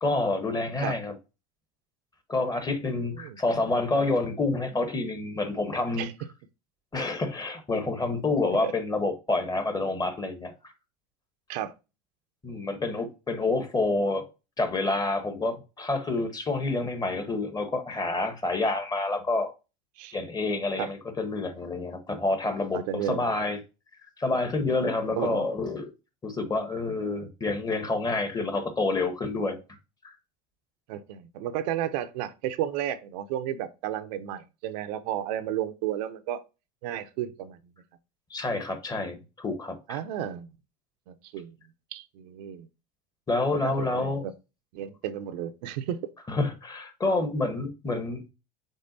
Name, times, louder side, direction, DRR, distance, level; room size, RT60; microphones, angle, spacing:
voice 1, 0.0-1.1 2.3-6.1 6.9-10.5 12.4-14.3 14.6-19.5 20.1-23.6 24.2-25.8 26.2-29.6 38.3-40.0 43.3-44.3 46.3-48.2, left 3 dB, 20° left, 1.0 m, -28 dB
voice 2, 22.7-23.5 25.2-25.5 30.9-36.4 36.8-37.6 39.9-40.5 41.1-41.5 41.9-42.7 43.5-44.3 44.7-46.0, right 11 dB, 75° right, 0.6 m, -33 dB
5.4 x 3.6 x 2.6 m
supercardioid pair, 105°, 21 cm